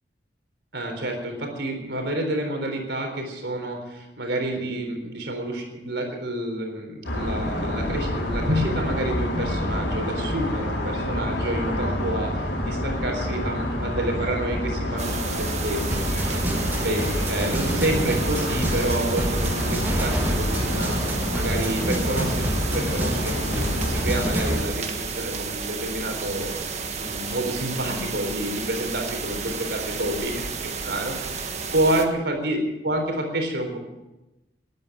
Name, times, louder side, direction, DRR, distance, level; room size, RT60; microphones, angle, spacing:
voice 1, 0.7-16.0 16.8-21.0 21.3-24.9 25.2-26.6 27.0-30.3 30.9-32.6 32.8-33.8, right 1 dB, 75° right, 3 dB, 3.9 m, -28 dB
sound 1, 7.0-24.6, left 1 dB, 90° left, 4.1 m, -28 dB
sound 2, 15.0-32.1, right 4 dB, 40° right, 1.4 m, -32 dB
sound 3, 15.9-24.6, equal, 10° right, 1.7 m, -28 dB
13.0 x 11.0 x 9.0 m, 0.98 s
head